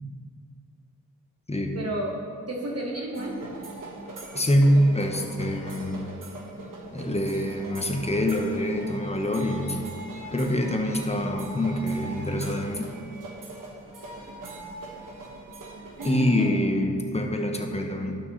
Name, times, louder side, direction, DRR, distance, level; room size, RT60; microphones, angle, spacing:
voice 1, 1.7-2.1 2.5-3.5 16.0-16.6, right 1 dB, 50° right, -2 dB, 1.1 m, -32 dB
sound 1, 3.1-16.4, right 2 dB, 75° right, 1.3 m, -41 dB
voice 2, 4.3-6.0 6.9-9.8 10.3-12.9 16.0-18.2, equal, 20° left, 3 dB, 0.9 m, -25 dB
12.0 x 6.1 x 3.1 m, 2.4 s
wide cardioid pair, 75°, 33 cm